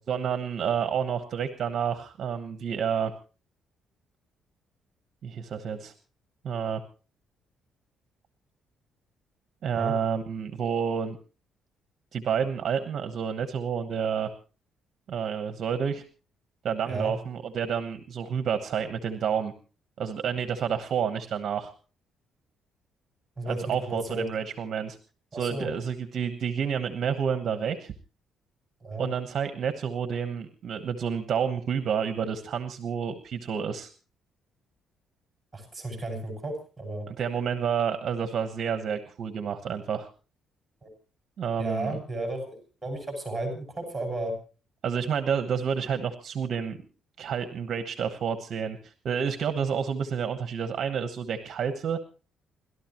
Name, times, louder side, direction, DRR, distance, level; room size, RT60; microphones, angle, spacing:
voice 1, 0.1-3.1 5.2-5.9 6.4-6.8 9.6-11.2 12.1-14.3 15.1-16.0 16.6-19.5 20.0-21.7 23.4-25.0 25.3-27.9 29.0-33.9 37.1-40.1 41.4-42.0 44.8-46.8 47.2-52.0, right 7 dB, 45° right, 8 dB, 1.1 m, -29 dB
voice 2, 23.4-24.3 25.3-25.7 28.8-29.1 35.5-37.1 41.6-44.3, right 2 dB, 10° right, 3 dB, 6.1 m, -33 dB
29.5 x 12.5 x 3.0 m, 0.35 s
cardioid pair, 175°, 0 cm